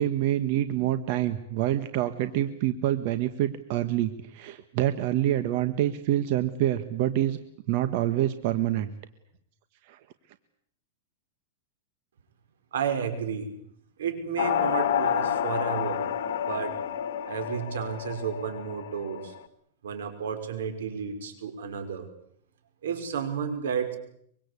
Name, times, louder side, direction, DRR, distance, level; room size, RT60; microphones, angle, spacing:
voice 1, 0.0-7.4 7.7-8.9 9.9-10.0, right 12 dB, 50° right, 10 dB, 1.4 m, -26 dB
voice 2, 12.7-13.5 14.0-16.1 16.4-16.8 17.3-19.3 19.8-22.1 22.8-24.0, right 7 dB, 90° right, 8 dB, 5.6 m, -32 dB
sound 1, 14.4-19.4, left 9 dB, 65° left, 2.0 m, -29 dB
24.5 x 23.5 x 8.4 m, 0.69 s
supercardioid pair, 155°, 0 cm